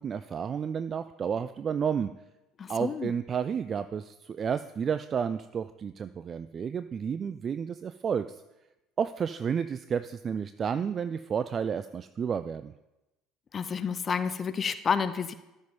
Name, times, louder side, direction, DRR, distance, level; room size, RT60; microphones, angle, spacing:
voice 1, 0.0-2.1 2.7-8.4 9.0-12.7, right 7 dB, 35° right, 12 dB, 0.3 m, -31 dB
voice 2, 2.6-3.1 13.5-15.3, left 6 dB, 35° left, 13 dB, 0.5 m, -30 dB
13.0 x 5.3 x 5.4 m, 0.98 s
figure-of-eight pair, 60°, 0 cm